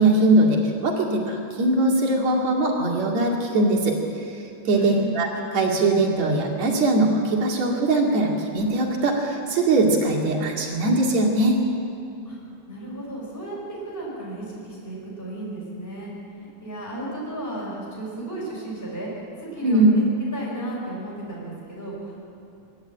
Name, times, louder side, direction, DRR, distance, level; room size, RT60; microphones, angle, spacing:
voice 1, 0.0-4.0 4.2-4.3 4.7-11.6 19.6-20.0, right 2 dB, 65° right, 0 dB, 3.6 m, -21 dB
voice 2, 12.7-16.1 16.4-20.0 20.3-22.3, right 2 dB, 5° left, -7 dB, 5.9 m, -34 dB
24.0 x 12.5 x 9.0 m, 2.7 s
omnidirectional pair, 3.3 m